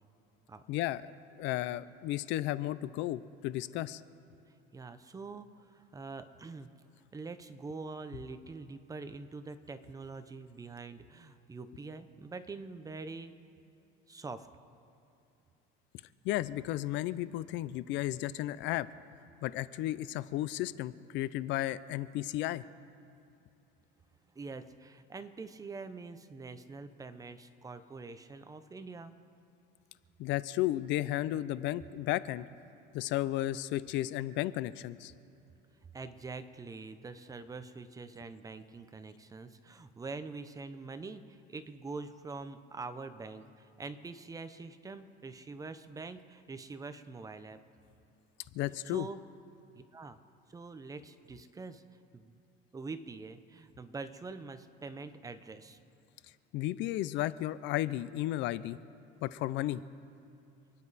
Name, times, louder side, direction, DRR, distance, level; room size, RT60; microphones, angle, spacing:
voice 1, 0.7-1.1 1.4-4.0 16.2-18.9 19.4-22.6 30.2-32.5 32.9-35.1 48.5-49.1 56.5-58.8 59.2-59.8, left 15 dB, 65° left, 16 dB, 0.5 m, -33 dB
voice 2, 4.7-6.7 7.1-13.4 14.1-14.5 24.3-29.1 35.9-47.6 48.9-49.2 49.9-50.2 50.5-51.8 52.1-52.4 52.7-55.8, right 3 dB, 15° right, 10 dB, 0.7 m, -44 dB
28.5 x 9.8 x 4.2 m, 2.8 s
cardioid pair, 135°, 20 cm